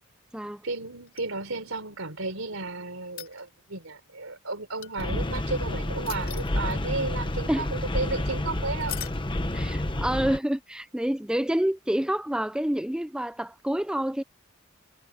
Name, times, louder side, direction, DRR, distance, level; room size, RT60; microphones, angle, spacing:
voice 1, 0.6-8.9, right 3 dB, 80° right, 3.8 m, -33 dB
sound 1, 1.1-1.8 3.0-3.8 4.8-5.4 6.1-7.0 8.8-9.2 11.5-11.6, left 12 dB, 45° left, 3.1 m, -40 dB
sound 2, 5.0-10.4, left 1 dB, 25° left, 1.1 m, -29 dB
voice 2, 9.5-14.2, right 1 dB, 5° right, 0.4 m, -28 dB
head